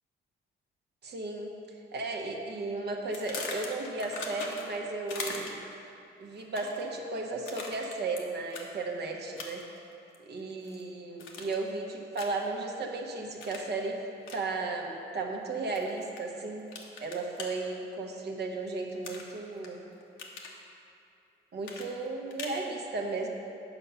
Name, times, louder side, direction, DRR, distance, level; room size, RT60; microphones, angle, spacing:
voice 1, 1.0-1.5 1.9-5.6 6.2-9.6 10.3-14.0 14.3-16.7 17.0-19.9 21.5-23.3, right 3 dB, 55° right, 1 dB, 1.1 m, -35 dB
sound 1, 3.1-4.8 5.1-5.7 6.4-6.8 7.5-8.2 8.5-8.7 9.4-9.8 10.1-10.8 11.2-11.7 12.1-12.5 13.4-13.7 14.2-14.4 15.7-16.2 16.7-17.5 19.0-19.7 20.0-20.6 21.6-22.6, left 4 dB, 80° left, 1.2 m, -40 dB
8.0 x 5.7 x 5.6 m, 2.7 s
cardioid pair, 90°, 20 cm